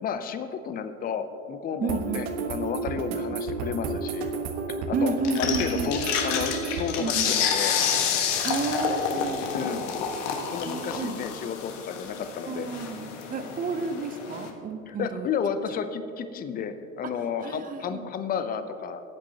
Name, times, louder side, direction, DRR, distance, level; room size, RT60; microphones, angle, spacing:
voice 1, 0.0-4.4 4.7-5.1 5.4-7.8 9.5-9.9 10.5-12.7 14.9-19.0, left 7 dB, 20° left, 10 dB, 0.6 m, -32 dB
voice 2, 1.8-2.2 3.1-3.2 4.9-5.9 7.0-7.3 8.4-9.8 10.7-11.1 12.5-15.3 17.0-17.1 17.4-18.0, right 4 dB, 20° right, 9 dB, 0.7 m, -31 dB
sound 1, 1.9-6.9, right 4 dB, 50° right, 1.4 m, -32 dB
sound 2, 5.2-14.5, left 7 dB, 55° left, 1.6 m, -29 dB
18.5 x 8.6 x 2.9 m, 2.7 s
hypercardioid pair, 90°, 44 cm